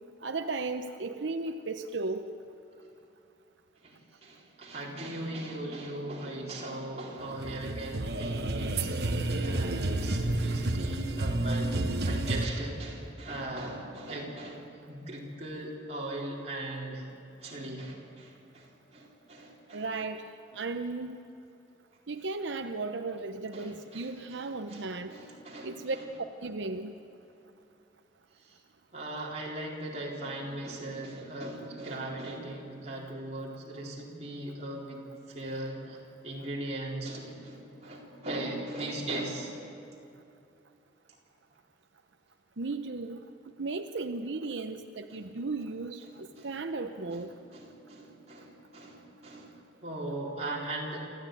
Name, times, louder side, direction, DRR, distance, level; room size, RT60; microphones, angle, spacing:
voice 1, 0.2-2.3 5.6-5.8 19.7-20.3 20.5-21.2 22.1-25.2 25.6-26.0 26.4-26.9 42.6-43.3 43.6-47.3, right 3 dB, 85° right, 7 dB, 0.8 m, -35 dB
voice 2, 3.8-11.8 12.0-17.1 17.4-19.9 23.5-26.1 28.4-28.6 28.9-39.5 45.1-45.3 46.1-46.8 47.1-51.1, right 1 dB, 35° right, -3 dB, 3.9 m, -39 dB
sound 1, 7.3-12.5, right 2 dB, 65° right, 1.2 m, -30 dB
27.0 x 14.5 x 9.2 m, 2.7 s
head